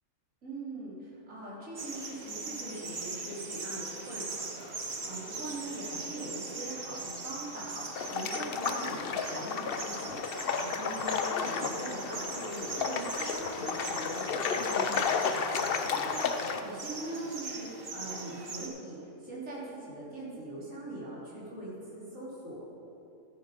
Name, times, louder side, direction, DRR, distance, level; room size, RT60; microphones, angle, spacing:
voice 1, 0.4-22.6, right 1 dB, 65° right, -8 dB, 3.9 m, -42 dB
sound 1, 1.8-18.7, right 3 dB, 45° right, 1.3 m, -41 dB
sound 2, 7.9-16.6, left 6 dB, 55° left, 0.7 m, -32 dB
14.0 x 10.0 x 5.2 m, 2.9 s
omnidirectional pair, 1.5 m